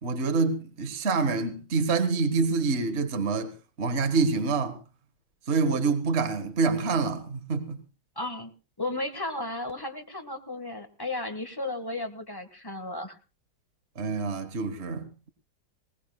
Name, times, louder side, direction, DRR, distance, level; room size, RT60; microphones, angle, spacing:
voice 1, 0.0-3.5 3.8-4.8 5.5-7.8 13.9-15.3, right 4 dB, 40° right, 1.6 m, -26 dB
voice 2, 8.1-8.5 8.8-13.2, left 2 dB, 15° left, 1.6 m, -34 dB
20.5 x 19.0 x 2.3 m
omnidirectional pair, 2.0 m